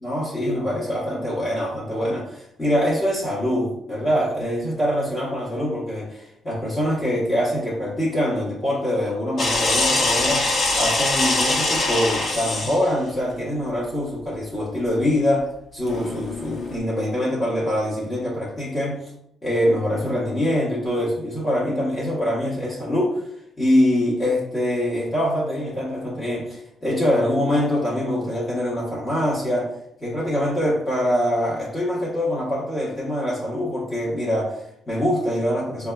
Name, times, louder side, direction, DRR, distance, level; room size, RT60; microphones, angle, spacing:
voice 1, 0.0-10.5 10.7-19.0 19.4-23.2 23.6-29.7 30.0-35.9, left 1 dB, 30° left, -8 dB, 1.0 m, -24 dB
sound 1, 9.4-12.9 15.9-16.8, left 2 dB, 55° left, 0.7 m, -23 dB
4.0 x 2.4 x 2.2 m, 0.76 s
cardioid pair, 90°, 0 cm